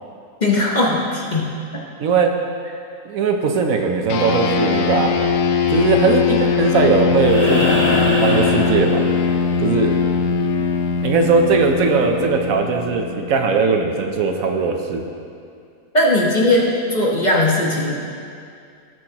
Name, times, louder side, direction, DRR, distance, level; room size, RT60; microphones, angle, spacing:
voice 1, 0.4-1.5 15.9-17.9, left 1 dB, 35° left, -3 dB, 1.1 m, -18 dB
voice 2, 2.0-2.3 3.1-5.1 5.7-7.7 8.2-9.0 9.6-9.9 11.0-15.0, right 4 dB, 70° right, 4 dB, 1.1 m, -19 dB
sound 1, 4.1-13.8, left 5 dB, 85° left, 1.2 m, -20 dB
sound 2, 7.2-9.5 11.3-11.4, left 1 dB, 55° left, 3.1 m, -22 dB
18.0 x 6.2 x 2.9 m, 2.4 s
omnidirectional pair, 1.6 m